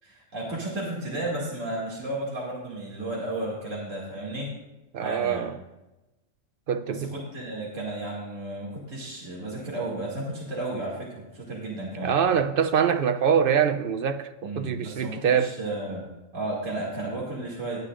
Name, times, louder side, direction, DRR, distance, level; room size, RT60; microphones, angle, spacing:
voice 1, 0.0-4.5 5.0-5.4 6.9-12.2 14.4-16.0 16.3-17.8, right 2 dB, 70° right, 2.8 m, -33 dB
voice 2, 4.9-5.6 6.7-7.1 12.0-15.5, right 7 dB, 55° right, 0.7 m, -24 dB
18.5 x 10.0 x 2.5 m
omnidirectional pair, 1.4 m